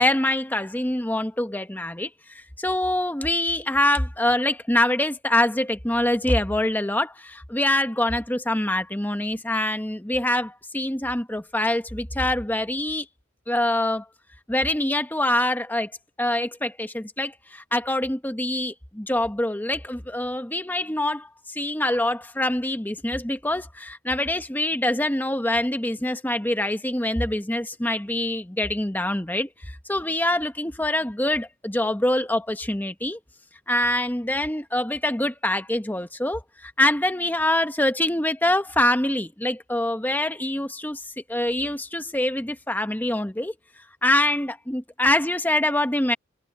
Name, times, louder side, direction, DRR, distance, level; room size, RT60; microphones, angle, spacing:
voice 1, 0.0-2.1 2.3-13.0 13.5-14.0 14.5-15.9 16.2-33.2 33.7-41.0 41.3-43.5 44.0-46.1, left 1 dB, 10° left, 0.9 m, -25 dB
head